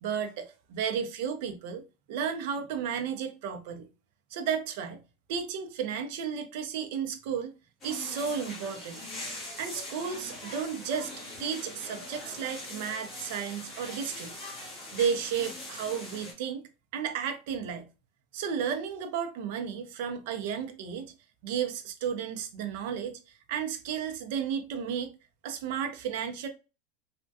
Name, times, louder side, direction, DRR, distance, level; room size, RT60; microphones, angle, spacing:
voice 1, 0.0-1.8 2.1-3.9 4.3-5.0 5.3-7.5 7.8-9.1 9.6-11.1 11.4-14.3 14.9-17.9 18.3-21.1 21.4-23.2 23.5-25.1 25.4-26.5, right 7 dB, 60° right, 0.6 m, -33 dB
sound 1, 7.8-16.3, left 2 dB, 20° left, 1.2 m, -42 dB
3.4 x 2.2 x 2.6 m
supercardioid pair, 165°, 0 cm